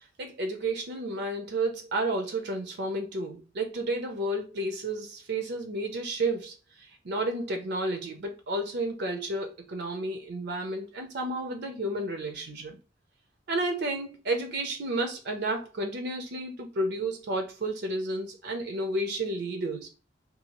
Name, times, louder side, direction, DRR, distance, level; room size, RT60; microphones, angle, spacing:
voice 1, 0.2-6.5 7.0-12.8 13.5-19.9, right 2 dB, 60° right, 0.5 m, -31 dB
2.7 x 2.3 x 2.9 m
head